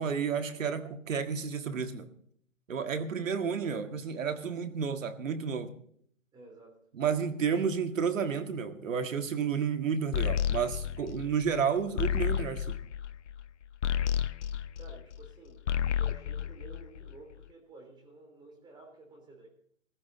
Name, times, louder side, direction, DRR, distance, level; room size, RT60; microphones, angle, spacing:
voice 1, 0.0-2.1 2.7-5.7 6.9-12.7, right 6 dB, 70° right, 8 dB, 1.8 m, -31 dB
voice 2, 6.3-6.8 8.2-8.3 11.2-11.4 14.7-15.6 16.0-19.5, right 3 dB, 10° right, 2 dB, 3.4 m, -52 dB
sound 1, 10.1-15.3 15.6-17.3, left 9 dB, 60° left, 0.7 m, -31 dB
15.0 x 14.5 x 4.1 m, 0.63 s
hypercardioid pair, 145°, 41 cm